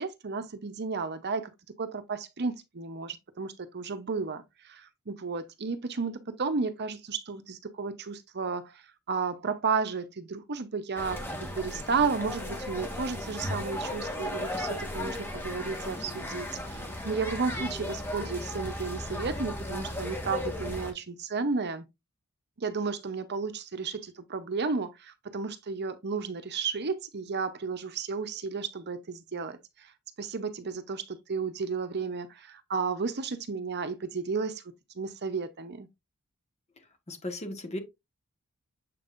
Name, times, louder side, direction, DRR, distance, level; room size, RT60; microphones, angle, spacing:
voice 1, 0.0-1.5 1.8-21.8 22.6-29.9 30.2-34.6 35.0-35.9, right 4 dB, 50° right, 0.8 m, -33 dB
sound 1, 11.0-20.9, left 1 dB, 10° left, 1.6 m, -36 dB
voice 2, 37.1-37.8, left 1 dB, 30° left, 1.4 m, -36 dB
7.5 x 5.3 x 2.6 m
head